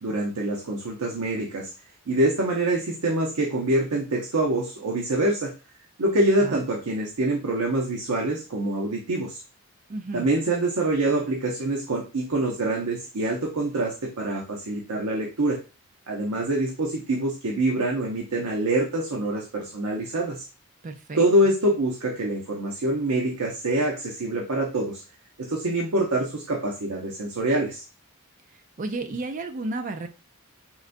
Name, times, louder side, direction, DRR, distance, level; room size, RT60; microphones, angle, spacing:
voice 1, 0.0-1.7 2.1-5.5 6.0-9.4 10.1-15.6 16.1-20.5 21.2-25.0 25.5-27.8, right 1 dB, 85° right, -1 dB, 0.6 m, -25 dB
voice 2, 9.9-10.3 20.8-21.2 28.8-30.1, right 2 dB, 35° right, 7 dB, 0.4 m, -32 dB
3.8 x 2.2 x 2.5 m, 0.32 s
head